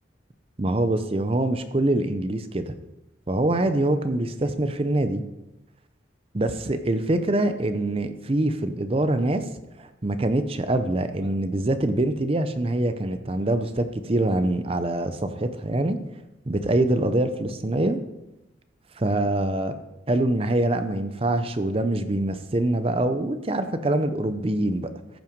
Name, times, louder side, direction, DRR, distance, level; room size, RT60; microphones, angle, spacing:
voice 1, 0.6-2.7 3.3-5.2 6.3-9.5 10.0-16.0 16.5-18.0 19.0-19.8 20.1-24.9, right 1 dB, 30° right, 10 dB, 0.6 m, -24 dB
14.5 x 5.7 x 5.2 m, 0.95 s
head